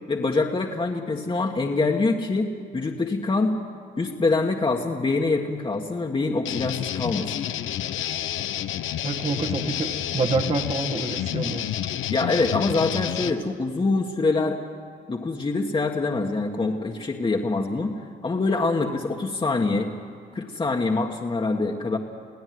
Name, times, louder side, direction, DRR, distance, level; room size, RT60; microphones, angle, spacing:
voice 1, 0.1-3.5 4.0-7.4 12.1-14.6 15.1-17.9 18.2-19.9 20.3-22.0, left 3 dB, 25° left, 0 dB, 1.7 m, -25 dB
sound 1, 6.5-13.3, left 11 dB, 80° left, 0.9 m, -29 dB
voice 2, 9.0-11.7, right 3 dB, 35° right, 4 dB, 1.8 m, -27 dB
28.5 x 16.5 x 9.6 m, 2.2 s
cardioid pair, 90°, 20 cm